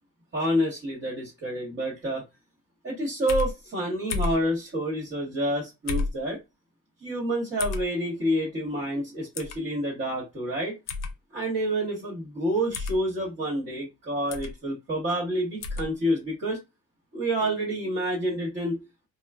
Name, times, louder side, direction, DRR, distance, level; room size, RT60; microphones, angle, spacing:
voice 1, 0.3-2.2 2.8-6.4 7.0-10.7 11.3-16.6 17.1-18.8, equal, 40° right, 1.2 m, -28 dB
sound 1, 3.3-3.5 4.1-4.4 5.9-6.2 7.6-7.8 9.3-9.6 10.9-11.1 12.7-13.0 14.3-14.5 15.6-15.9, left 4 dB, 65° left, 0.5 m, -30 dB
3.1 x 2.0 x 2.3 m
cardioid pair, 90°, 30 cm